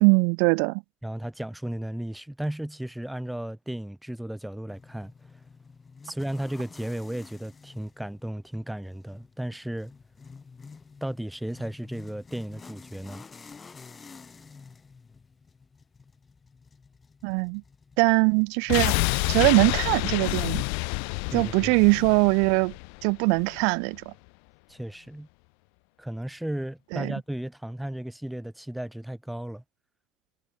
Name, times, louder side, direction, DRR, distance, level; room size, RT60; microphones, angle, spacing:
voice 1, 0.0-0.8 17.2-17.6 18.0-19.0 19.3-20.6 21.3-22.7 23.0-24.1 26.9-27.1, right 40 dB or more, 85° right, 0.5 m, -22 dB
voice 2, 1.0-5.1 6.0-9.9 11.0-13.2 21.3-21.8 24.7-25.3 26.0-29.6, right 1 dB, 5° right, 0.5 m, -34 dB
sound 1, 4.7-22.0, left 5 dB, 20° left, 5.5 m, -51 dB
sound 2, 18.7-23.6 23.9-24.0, left 40 dB or more, 85° left, 0.4 m, -28 dB
cardioid pair, 135°, 0 cm